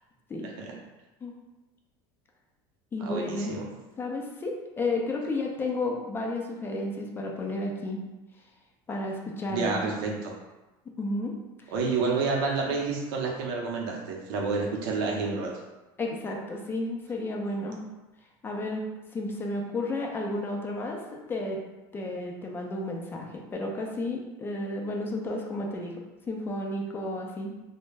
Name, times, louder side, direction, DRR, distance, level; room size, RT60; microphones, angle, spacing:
voice 1, 0.4-0.7 3.0-3.7 9.5-10.3 11.7-15.5, right 4 dB, 75° right, -1 dB, 0.6 m, -29 dB
voice 2, 2.9-3.6 4.0-8.0 8.9-9.8 11.0-11.3 16.0-17.8 18.4-18.8 19.1-21.6 21.9-26.0 26.3-27.6, left 2 dB, 20° left, 0 dB, 0.3 m, -32 dB
2.1 x 2.0 x 3.2 m, 1.1 s
supercardioid pair, 130°, 12 cm